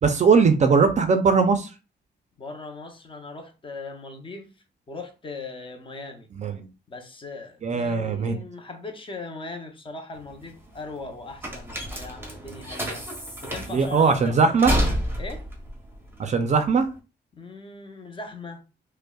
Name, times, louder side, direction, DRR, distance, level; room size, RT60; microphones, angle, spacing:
voice 1, 0.0-1.7 6.3-6.7 7.6-8.4 13.7-14.7 16.2-16.9, right 5 dB, 40° right, 0.4 m, -20 dB
voice 2, 2.4-4.5 4.9-6.3 6.9-13.1 13.4-14.6 15.2-15.4 17.3-18.6, left 3 dB, 30° left, 0.6 m, -39 dB
sound 1, 10.1-16.9, equal, 10° right, 0.8 m, -30 dB
5.1 x 2.1 x 2.3 m
wide cardioid pair, 160°, 18 cm